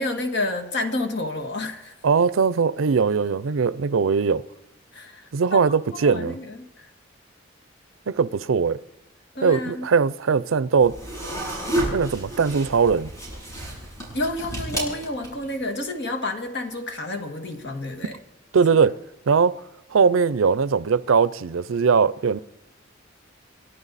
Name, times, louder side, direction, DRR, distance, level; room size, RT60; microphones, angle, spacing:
voice 1, 0.0-1.9 4.9-5.6 5.9-6.9 9.4-9.9 14.1-18.2 18.7-18.9, left 2 dB, 60° left, 1.8 m, -30 dB
voice 2, 2.0-4.4 5.3-6.3 8.1-8.8 9.4-10.9 11.9-13.1 18.5-18.9 19.3-19.5 19.9-22.4, right 5 dB, 85° right, 0.5 m, -20 dB
sound 1, 10.8-15.6, right 1 dB, 15° left, 6.7 m, -31 dB
28.5 x 11.0 x 4.1 m
head